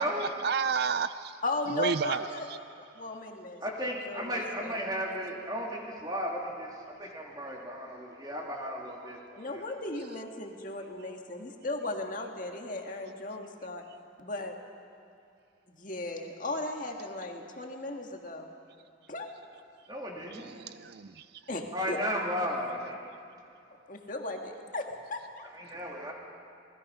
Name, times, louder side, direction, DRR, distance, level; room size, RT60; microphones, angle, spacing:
voice 1, 0.0-1.4 1.7-2.6 20.3-21.4, right 6 dB, 55° right, 13 dB, 0.4 m, -32 dB
voice 2, 1.4-2.5 2.9-4.8 9.4-13.8 14.2-14.5 15.8-18.5 19.1-19.3 21.5-22.0 23.9-25.4, left 2 dB, 45° left, 2 dB, 1.8 m, -36 dB
voice 3, 3.6-9.6 19.9-20.6 21.7-23.0 25.5-26.1, equal, 20° right, -2 dB, 3.0 m, -35 dB
27.0 x 20.0 x 5.6 m, 2.5 s
head